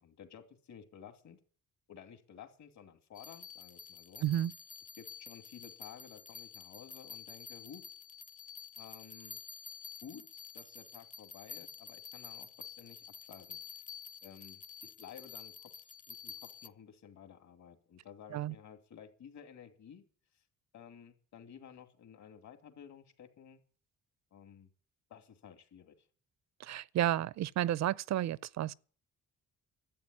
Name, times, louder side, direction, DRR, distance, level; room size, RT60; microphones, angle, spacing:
voice 1, 0.0-1.4 1.9-4.3 5.0-7.8 8.8-9.4 10.0-13.8 14.2-20.0 20.3-20.4 20.7-23.6 24.3-24.7 25.1-26.1, left 8 dB, 65° left, 2.6 m, -54 dB
sound 1, 3.1-16.7, left 6 dB, 25° left, 0.6 m, -49 dB
voice 2, 4.2-4.5 18.3-18.5 26.6-28.7, right 12 dB, 60° right, 0.5 m, -32 dB
12.5 x 8.0 x 9.8 m
cardioid pair, 90°, 30 cm